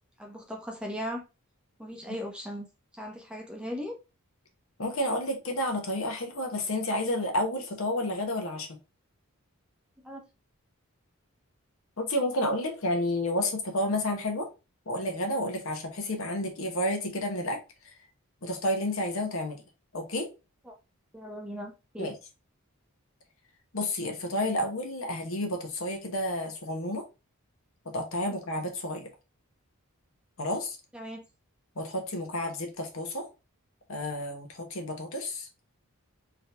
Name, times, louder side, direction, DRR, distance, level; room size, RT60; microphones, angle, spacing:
voice 1, 0.2-1.2 1.8-2.7 2.9-3.9 10.0-10.2 20.6-20.7 21.1-22.1 30.9-31.2, equal, 5° right, 0.7 m, -38 dB
voice 2, 4.8-8.7 12.0-14.5 14.9-17.6 18.4-19.6 19.9-20.3 22.0-22.2 23.7-27.0 27.9-29.1 30.4-30.8 31.8-33.3 33.9-35.5, left 1 dB, 65° left, 1.1 m, -30 dB
3.7 x 2.9 x 3.4 m
head